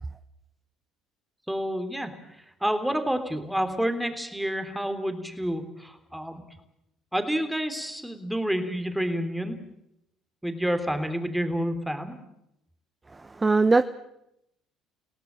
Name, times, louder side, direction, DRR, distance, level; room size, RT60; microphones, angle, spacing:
voice 1, 1.5-6.4 7.1-9.6 10.4-12.2, equal, 5° right, 8 dB, 3.5 m, -29 dB
voice 2, 13.1-13.8, right 3 dB, 20° right, 12 dB, 1.0 m, -21 dB
26.5 x 17.5 x 7.6 m, 0.81 s
hypercardioid pair, 60°, 0 cm